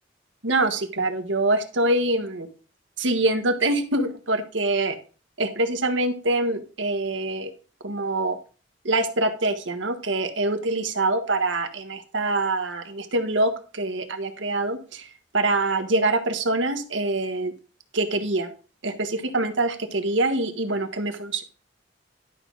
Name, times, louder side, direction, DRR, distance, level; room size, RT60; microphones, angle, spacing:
voice 1, 0.4-2.5 3.0-4.9 5.4-7.5 7.8-8.4 8.8-15.1 15.3-17.5 17.9-18.5 18.8-21.4, right 2 dB, 80° right, 8 dB, 1.4 m, -24 dB
11.5 x 4.0 x 6.3 m, 0.37 s
head